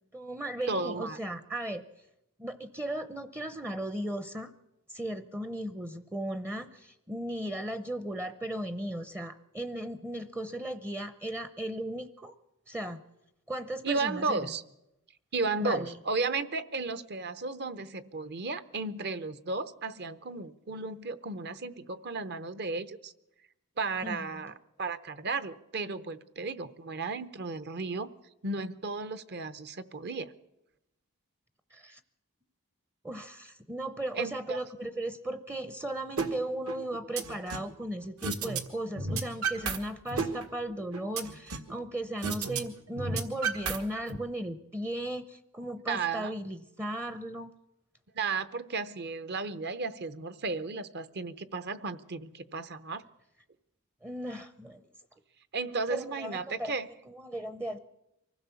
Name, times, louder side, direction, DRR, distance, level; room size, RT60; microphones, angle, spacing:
voice 1, 0.1-1.8 2.4-4.5 4.9-12.3 12.7-13.0 13.5-14.5 15.6-16.0 24.0-24.5 31.7-32.0 33.0-47.5 54.0-54.8 55.9-56.7 57.1-57.8, right 1 dB, 10° right, 12 dB, 0.6 m, -36 dB
voice 2, 0.7-1.2 13.8-14.6 15.3-23.1 23.8-28.1 28.4-30.3 34.2-34.6 45.9-46.3 48.1-53.0 55.5-56.9, right 4 dB, 50° right, 14 dB, 0.9 m, -34 dB
sound 1, 36.2-36.3 36.7-37.7 38.2-38.6 38.9-39.8 40.1-41.7 42.2-42.6 42.9-44.2, right 4 dB, 70° right, 1.7 m, -32 dB
24.5 x 16.0 x 7.1 m, 0.90 s
head